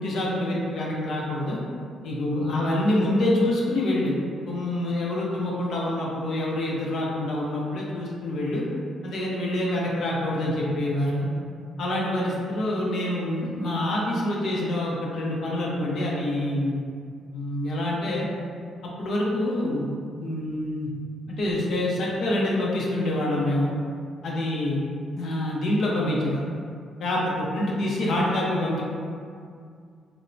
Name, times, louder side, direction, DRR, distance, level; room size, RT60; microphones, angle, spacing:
voice 1, 0.0-1.6 2.0-4.2 4.4-8.6 9.0-11.3 11.8-16.7 17.3-18.3 19.0-19.9 20.1-20.9 21.3-23.7 24.2-24.8 25.1-26.4 27.0-28.8, left 1 dB, 65° left, -4 dB, 0.6 m, -26 dB
3.1 x 2.1 x 2.5 m, 2.2 s
cardioid pair, 90°, 0 cm